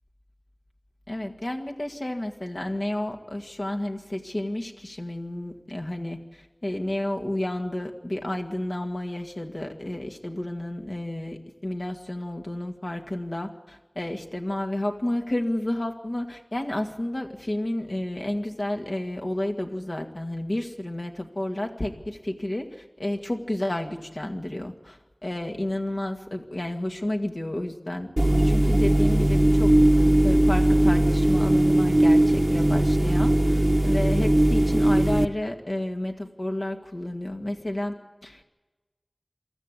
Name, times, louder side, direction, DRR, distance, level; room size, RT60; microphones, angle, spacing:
voice 1, 1.1-6.2 6.6-29.7 30.2-38.4, left 1 dB, 65° left, 2 dB, 2.1 m, -31 dB
sound 1, 28.2-35.3, right 1 dB, 35° right, 0.8 m, -19 dB
23.5 x 14.0 x 8.3 m, 1.2 s
wide cardioid pair, 40°, 0 cm